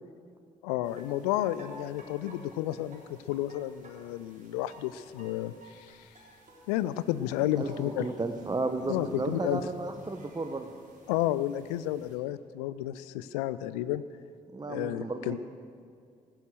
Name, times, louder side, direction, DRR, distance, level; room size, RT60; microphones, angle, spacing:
voice 1, 0.6-3.0 3.3-6.1 6.7-8.1 8.9-9.6 11.1-14.0 14.7-15.4, left 13 dB, 70° left, 15 dB, 0.4 m, -31 dB
sound 1, 0.8-12.1, right 1 dB, 35° right, 3.8 m, -52 dB
voice 2, 8.0-10.7 14.5-15.4, right 3 dB, 20° right, 5 dB, 1.0 m, -33 dB
17.0 x 10.5 x 6.6 m, 2.3 s
figure-of-eight pair, 40°, 20 cm